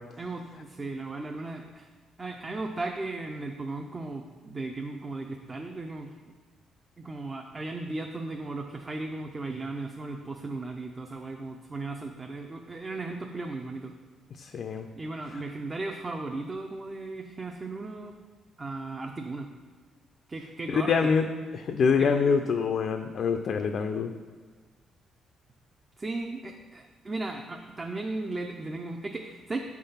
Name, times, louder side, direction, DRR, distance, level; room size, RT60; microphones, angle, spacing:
voice 1, 0.2-1.9 2.2-6.1 7.0-13.9 15.0-18.2 18.6-19.5 20.3-21.1 22.0-22.1 26.0-29.6, right 2 dB, 30° right, 3 dB, 0.6 m, -36 dB
voice 2, 14.4-14.9 20.7-21.3 21.5-24.1, left 5 dB, 60° left, 6 dB, 0.4 m, -25 dB
7.7 x 3.6 x 5.7 m, 1.5 s
cardioid pair, 90°, 0 cm